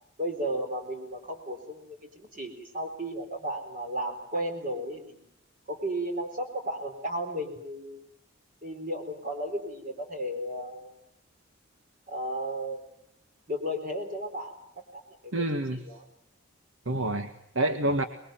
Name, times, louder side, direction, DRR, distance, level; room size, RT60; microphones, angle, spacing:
voice 1, 0.2-5.3 5.7-8.0 8.6-10.9 12.1-12.9 13.5-14.5 14.9-15.5 15.7-16.0, equal, 40° right, 4 dB, 4.2 m, -34 dB
voice 2, 15.3-15.8 16.8-18.0, right 1 dB, 70° right, 7 dB, 1.7 m, -28 dB
26.0 x 21.5 x 9.2 m, 0.74 s
head